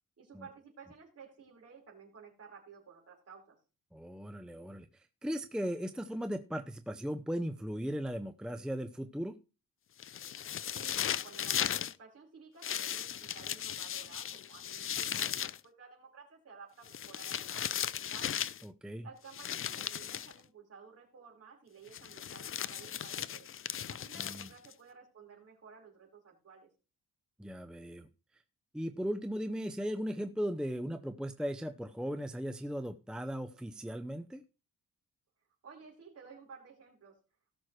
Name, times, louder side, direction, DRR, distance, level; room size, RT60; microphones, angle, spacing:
voice 1, 0.2-3.6 10.4-18.4 19.0-23.5 23.9-26.7 35.6-37.2, right 5 dB, 45° right, -1 dB, 4.7 m, -54 dB
voice 2, 3.9-9.4 18.6-19.1 24.2-24.5 27.4-28.1 28.3-28.4 28.7-34.4, equal, ahead, 8 dB, 0.6 m, -37 dB
sound 1, 10.0-11.9 12.6-15.6 16.9-18.6 19.3-20.3 21.9-24.7, left 9 dB, 40° left, 0.4 m, -37 dB
18.0 x 6.2 x 3.2 m, 0.32 s
cardioid pair, 120°, 33 cm